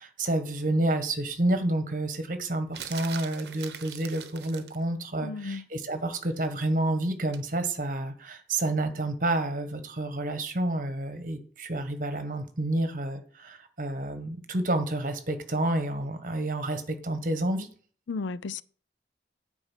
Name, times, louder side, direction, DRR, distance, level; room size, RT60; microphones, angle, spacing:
voice 1, 0.0-17.7, right 1 dB, 45° right, 1.4 m, -29 dB
sound 1, 2.7-4.8 7.3-7.5, right 8 dB, 65° right, 0.9 m, -41 dB
voice 2, 5.2-5.6 18.1-18.6, left 4 dB, 80° left, 0.5 m, -34 dB
8.9 x 5.4 x 7.4 m
head